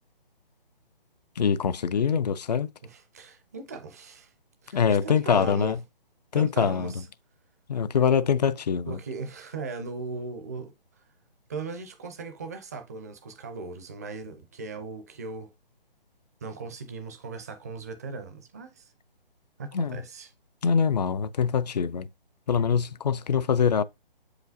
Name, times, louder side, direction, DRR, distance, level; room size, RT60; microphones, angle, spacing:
voice 1, 1.4-2.7 4.7-5.8 6.3-6.9 7.7-9.0 19.7-20.0 20.6-22.1 22.5-23.8, left 7 dB, 45° left, 0.4 m, -24 dB
voice 2, 2.8-4.3 4.6-5.8 6.3-7.1 8.9-11.0 11.5-15.5 16.4-18.9 19.6-20.3, right 4 dB, 20° right, 0.4 m, -38 dB
7.5 x 4.9 x 2.6 m
figure-of-eight pair, 150°, 29 cm